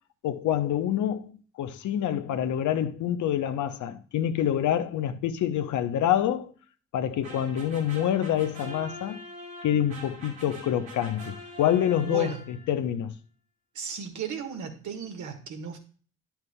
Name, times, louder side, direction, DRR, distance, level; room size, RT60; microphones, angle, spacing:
voice 1, 0.2-6.5 6.9-9.2 9.6-13.1, left 10 dB, 65° left, 0.8 m, -27 dB
sound 1, 7.2-12.8, equal, 90° right, 2.2 m, -44 dB
voice 2, 12.0-12.4 13.7-15.8, right 6 dB, 65° right, 1.6 m, -35 dB
10.5 x 5.8 x 2.2 m
hypercardioid pair, 40°, 31 cm